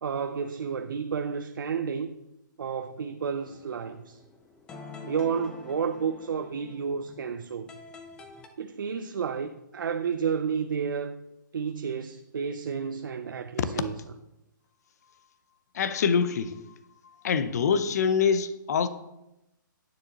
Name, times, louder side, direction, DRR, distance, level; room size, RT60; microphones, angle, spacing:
voice 1, 0.0-2.2 2.6-4.2 5.0-7.7 8.6-11.2 11.5-14.0, right 6 dB, 85° right, 0.5 m, -31 dB
sound 1, 3.4-8.5, left 4 dB, 10° left, 0.4 m, -47 dB
voice 2, 15.7-16.6 17.2-18.9, left 6 dB, 50° left, 0.6 m, -25 dB
9.2 x 6.7 x 2.9 m
hypercardioid pair, 165°, 11 cm